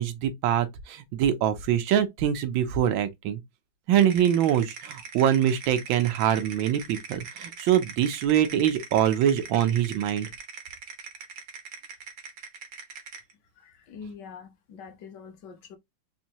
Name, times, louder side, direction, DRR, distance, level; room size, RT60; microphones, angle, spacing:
voice 1, 0.0-3.4 3.9-10.3, right 10 dB, 85° right, 1.5 m, -24 dB
sound 1, 3.9-13.3, right 5 dB, 60° right, 1.2 m, -42 dB
voice 2, 13.6-15.8, left 6 dB, 65° left, 1.4 m, -44 dB
4.2 x 2.7 x 2.9 m
omnidirectional pair, 2.1 m